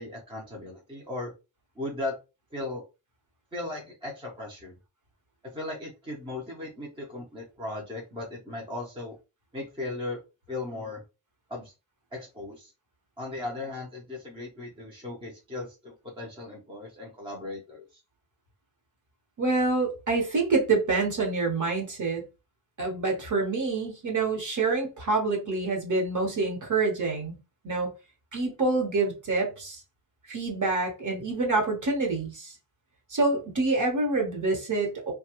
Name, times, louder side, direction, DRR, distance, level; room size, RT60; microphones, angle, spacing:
voice 1, 0.0-1.3 1.8-2.1 2.5-2.8 3.5-4.8 5.5-9.1 9.5-10.2 10.5-11.0 11.5-11.7 12.1-12.7 13.2-18.0, left 2 dB, 10° right, 0.6 m, -37 dB
voice 2, 19.4-22.2 22.8-27.4 27.6-27.9 28.3-29.8 30.3-32.5 33.1-35.1, right 3 dB, 40° right, 1.1 m, -27 dB
2.8 x 2.3 x 2.9 m
wide cardioid pair, 150°, 48 cm